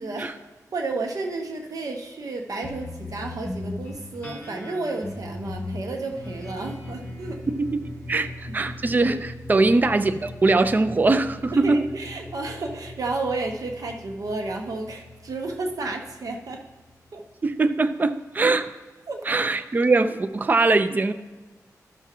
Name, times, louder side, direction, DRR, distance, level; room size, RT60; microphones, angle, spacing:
voice 1, 0.0-0.3 0.7-7.4 8.1-8.7 9.5-9.6 11.5-16.6 17.1-17.2 19.1-19.4, right 3 dB, 65° right, 3 dB, 0.9 m, -32 dB
sound 1, 2.6-17.3, left 1 dB, 25° left, 2.6 m, -39 dB
voice 2, 7.6-8.3 8.5-11.8 17.4-18.7 19.3-21.1, right 3 dB, 30° right, 10 dB, 0.4 m, -21 dB
13.5 x 5.9 x 2.9 m, 1.2 s
wide cardioid pair, 135°, 6 cm